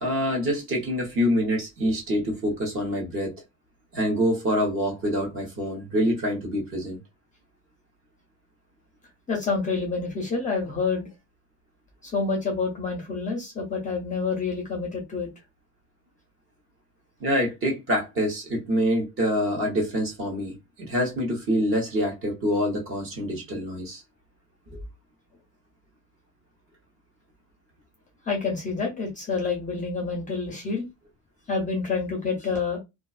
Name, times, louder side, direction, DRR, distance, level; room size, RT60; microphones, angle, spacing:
voice 1, 0.0-3.3 3.9-7.0 17.2-24.0, equal, 35° right, 0.9 m, -26 dB
voice 2, 9.3-11.1 12.0-15.3 28.3-30.9 31.5-32.8, left 4 dB, 20° left, 0.5 m, -28 dB
2.4 x 2.3 x 2.4 m
cardioid pair, 175°, 37 cm